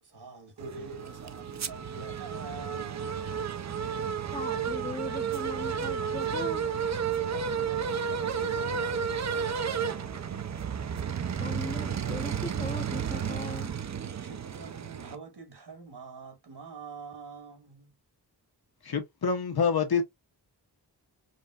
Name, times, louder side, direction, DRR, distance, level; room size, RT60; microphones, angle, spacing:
voice 1, 0.0-3.3 7.3-10.6 14.2-17.9, right 4 dB, 70° right, 1.7 m, -46 dB
sound 1, 0.6-15.2, right 7 dB, 45° right, 0.5 m, -32 dB
voice 2, 4.3-6.7 11.4-13.7, left 2 dB, 15° left, 0.7 m, -39 dB
voice 3, 18.8-20.0, left 6 dB, 65° left, 1.0 m, -26 dB
5.2 x 2.6 x 2.3 m
wide cardioid pair, 80°, 41 cm